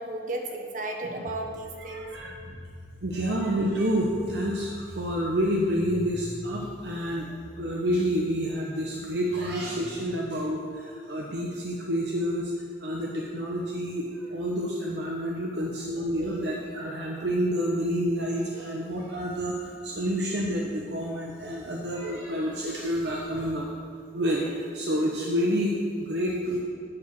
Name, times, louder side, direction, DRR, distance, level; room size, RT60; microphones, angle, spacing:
voice 1, 0.0-2.2 2.4-2.6, right 2 dB, 45° right, 2 dB, 1.0 m, -34 dB
sound 1, 1.3-11.6, equal, 5° left, 0.6 m, -45 dB
voice 2, 1.8-2.4 3.0-7.3 7.6-12.5 12.8-23.7 24.1-26.6, equal, 65° right, -2 dB, 0.9 m, -29 dB
9.8 x 4.9 x 6.6 m, 2.1 s
head